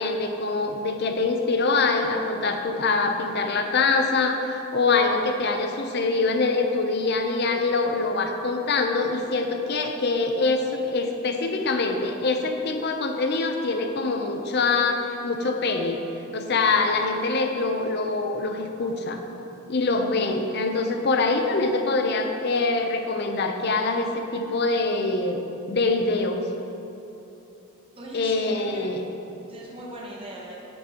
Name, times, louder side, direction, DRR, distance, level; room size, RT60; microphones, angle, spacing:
voice 1, 0.0-16.0 16.3-19.2 19.7-25.4 25.7-26.4 28.1-29.0, left 3 dB, 50° left, 4 dB, 0.7 m, -24 dB
voice 2, 27.9-28.9 29.5-30.6, right 1 dB, 25° right, -3 dB, 0.9 m, -40 dB
9.7 x 8.7 x 3.0 m, 2.9 s
head